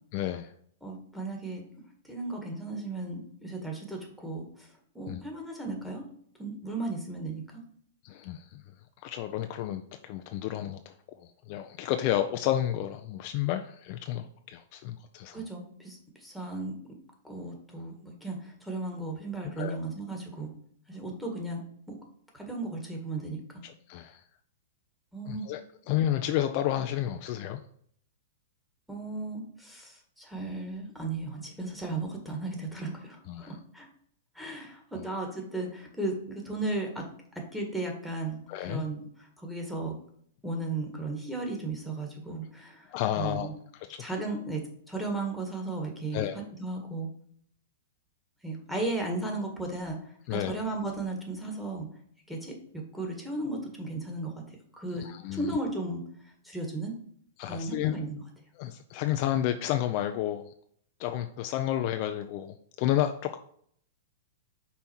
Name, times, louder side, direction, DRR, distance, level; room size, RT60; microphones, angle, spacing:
voice 1, 0.1-0.5 5.1-5.2 8.0-8.6 9.0-10.9 11.5-15.4 19.6-19.8 23.6-24.2 25.3-25.6 25.9-27.6 33.3-33.5 34.9-35.0 38.5-38.8 42.9-43.5 43.8-44.0 46.1-46.3 50.3-50.5 55.0-55.5 57.4-58.0 58.6-60.5 61.0-63.4, left 12 dB, 45° left, 7 dB, 0.4 m, -31 dB
voice 2, 0.8-1.6 2.0-4.7 5.0-6.0 6.4-7.4 15.3-16.8 17.2-20.5 20.9-22.0 22.3-23.6 25.1-25.5 28.9-33.9 34.4-37.1 37.4-38.4 38.7-40.0 40.4-42.9 43.2-43.5 44.0-47.1 48.4-51.9 52.3-55.1 55.3-56.0 56.4-56.9 57.5-58.2, right 2 dB, ahead, 0 dB, 1.8 m, -35 dB
5.5 x 4.2 x 4.4 m, 0.64 s
hypercardioid pair, 110°, 0 cm